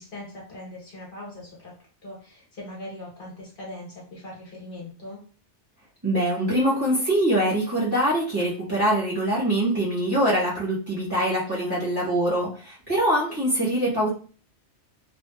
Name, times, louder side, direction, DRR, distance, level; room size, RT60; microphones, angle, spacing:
voice 1, 0.0-1.7 2.0-5.2 11.5-11.9, left 1 dB, 50° left, -4 dB, 1.1 m, -40 dB
voice 2, 6.0-14.1, right 1 dB, 20° right, -7 dB, 0.9 m, -23 dB
2.9 x 2.3 x 2.2 m, 0.40 s
omnidirectional pair, 1.2 m